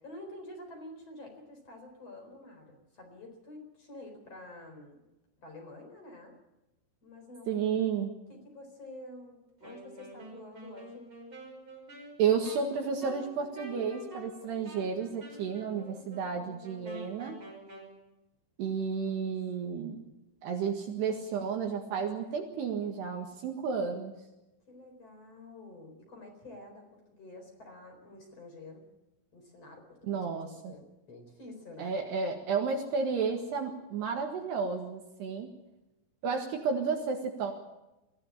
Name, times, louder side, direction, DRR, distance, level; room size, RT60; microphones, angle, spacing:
voice 1, 0.0-5.0 5.4-6.3 7.0-7.6 8.3-11.0 15.3-17.3 19.0-19.1 19.7-20.0 24.7-28.8 29.3-30.2 30.5-31.9, left 2 dB, 30° left, 3 dB, 4.8 m, -49 dB
voice 2, 7.5-8.1 12.2-17.4 18.6-20.0 20.4-24.1 30.1-30.7 31.8-35.5 36.2-37.5, right 6 dB, 65° right, 3 dB, 3.4 m, -32 dB
Wind instrument woodwind instrument, 9.6-17.9, right 1 dB, 25° right, 6.2 m, -48 dB
24.0 x 15.5 x 8.6 m, 0.97 s
omnidirectional pair, 5.9 m